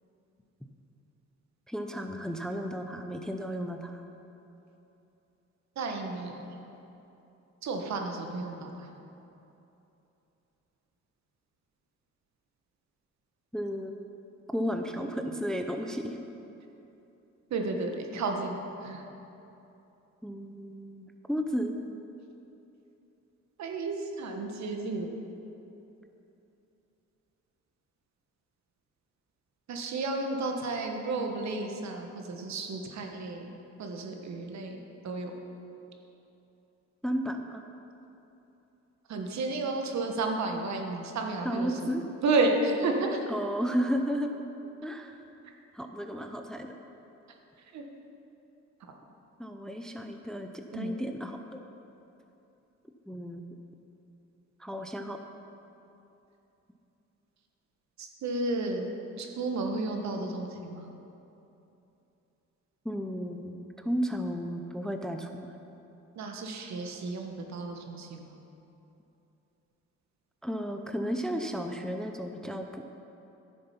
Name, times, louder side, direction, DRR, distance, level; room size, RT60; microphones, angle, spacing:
voice 1, 1.7-4.0 13.5-13.9 14.5-16.2 20.2-21.8 37.0-37.6 41.4-42.0 43.3-44.3 44.8-45.1 45.7-46.7 49.4-51.6 53.1-53.4 54.6-55.2 62.8-65.5 70.4-72.8, equal, ahead, 5 dB, 0.6 m, -33 dB
voice 2, 5.8-6.4 7.6-8.9 17.5-19.0 23.6-25.1 29.7-33.5 33.8-34.8 35.0-35.3 39.1-41.9 42.2-43.2 45.4-45.5 47.7-47.8 50.7-51.0 58.0-58.9 59.2-60.9 66.1-68.3, right 3 dB, 65° right, 3 dB, 1.3 m, -32 dB
11.0 x 6.7 x 5.6 m, 2.9 s
cardioid pair, 90°, 30 cm